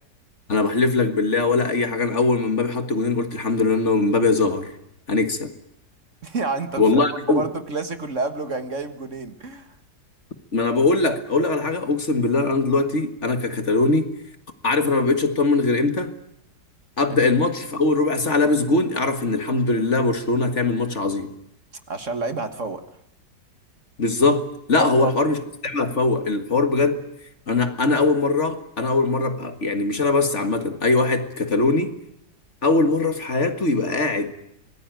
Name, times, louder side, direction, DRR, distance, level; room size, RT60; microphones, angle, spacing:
voice 1, 0.5-4.7 5.1-5.5 6.8-7.5 10.5-14.1 14.6-16.1 17.0-21.3 24.0-27.0 27.5-31.9 32.6-34.3, left 3 dB, 45° left, 2.0 m, -21 dB
voice 2, 6.2-9.7 21.9-22.8 24.7-25.2, right 3 dB, 45° right, 1.8 m, -29 dB
26.0 x 20.0 x 9.1 m
omnidirectional pair, 1.9 m